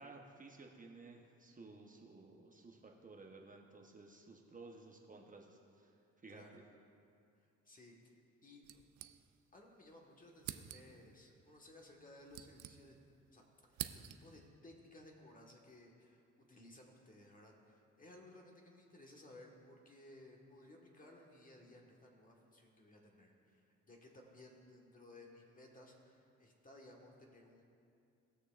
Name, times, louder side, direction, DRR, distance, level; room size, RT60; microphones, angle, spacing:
voice 1, 0.0-6.6, right 3 dB, 25° right, 0 dB, 0.9 m, -56 dB
voice 2, 6.3-6.6 7.6-7.9 8.4-8.9 9.5-12.9 13.3-13.4 13.7-27.6, left 1 dB, 25° left, 0 dB, 1.5 m, -59 dB
sound 1, 8.6-9.6 9.9-10.0 10.4-11.1 11.9-13.2 13.5-14.5, right 12 dB, 80° right, 0.5 m, -48 dB
19.0 x 6.5 x 2.5 m, 2.5 s
cardioid pair, 90°, 30 cm